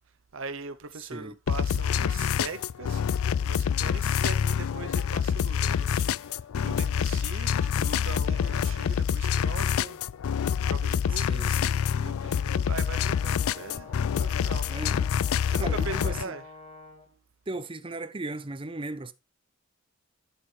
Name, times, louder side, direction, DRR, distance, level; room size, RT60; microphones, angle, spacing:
voice 1, 0.3-6.4 6.6-10.0 10.7-11.5 12.0-13.9 14.2-14.7 15.5-16.4, right 4 dB, 65° right, 0.7 m, -40 dB
voice 2, 1.0-1.4 11.1-11.8 14.7-15.1 15.6-16.4 17.5-19.1, right 2 dB, 25° right, 0.7 m, -37 dB
sound 1, 1.5-16.2, left 8 dB, 80° left, 0.4 m, -27 dB
Brass instrument, 12.8-17.2, left 3 dB, 30° left, 2.2 m, -48 dB
11.0 x 6.7 x 3.3 m
head